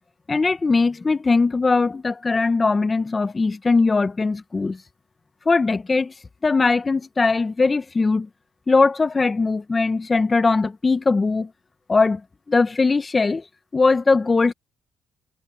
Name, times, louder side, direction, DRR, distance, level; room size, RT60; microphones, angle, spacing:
voice 1, 0.3-4.8 5.4-6.1 6.4-8.3 8.7-11.5 11.9-12.2 12.5-13.4 13.7-14.5, left 3 dB, 25° left, 1.1 m, -20 dB
cardioid pair, 90°, 0 cm